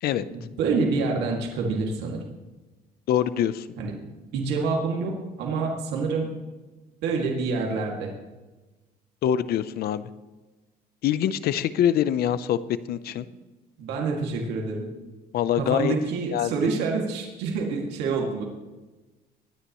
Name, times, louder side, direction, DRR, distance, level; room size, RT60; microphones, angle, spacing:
voice 1, 0.3-2.2 3.8-6.3 7.0-8.1 13.8-14.9 15.5-18.4, right 4 dB, 90° right, 0 dB, 2.3 m, -27 dB
voice 2, 3.1-3.7 9.2-10.1 11.0-12.6 12.9-13.3 15.3-15.9 16.3-16.5, left 10 dB, 65° left, 15 dB, 0.7 m, -24 dB
22.5 x 9.9 x 3.1 m, 1.2 s
cardioid pair, 110°, 17 cm